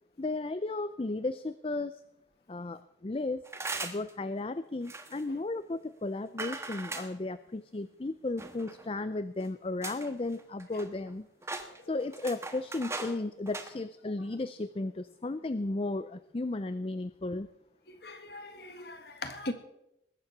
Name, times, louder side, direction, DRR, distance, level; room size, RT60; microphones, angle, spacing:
voice 1, 0.2-2.0 2.5-3.5 3.8-11.3 11.9-17.5, left 2 dB, 30° left, 13 dB, 0.5 m, -34 dB
sound 1, 3.5-4.1 4.9-5.2 6.4-7.1 8.4-8.9 9.4-9.5 9.8-10.1 10.4-11.1 11.4-13.2 13.5-13.7, right 3 dB, 15° right, 1.3 m, -39 dB
voice 2, 18.0-19.5, left 2 dB, 60° left, 7 dB, 1.8 m, -39 dB
20.5 x 9.8 x 6.0 m, 0.84 s
head